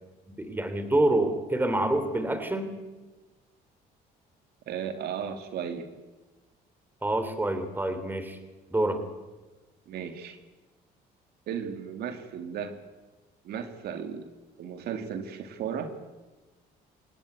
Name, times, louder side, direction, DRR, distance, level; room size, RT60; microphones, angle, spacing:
voice 1, 0.3-2.7 7.0-8.4 8.7-9.0, right 1 dB, 10° right, 10 dB, 3.3 m, -27 dB
voice 2, 4.7-5.9 9.9-10.4 11.5-12.8 13.4-14.3 14.6-16.0, right 7 dB, 70° right, 8 dB, 2.4 m, -35 dB
27.0 x 16.5 x 9.5 m, 1.2 s
cardioid pair, 110°, 17 cm